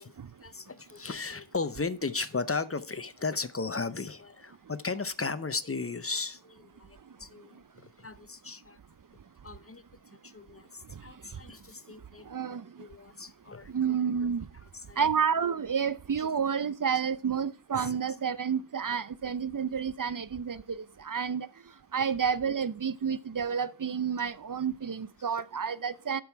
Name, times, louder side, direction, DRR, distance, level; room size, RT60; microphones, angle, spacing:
voice 1, 0.4-7.6 8.0-8.8 9.4-9.8 10.2-12.3 12.8-13.7 14.9-15.0, left 4 dB, 30° left, 0.7 m, -35 dB
voice 2, 12.3-12.7 13.7-14.5 15.0-21.5 21.9-26.2, right 7 dB, 50° right, 0.6 m, -30 dB
10.5 x 6.2 x 4.5 m
wide cardioid pair, 75°, 43 cm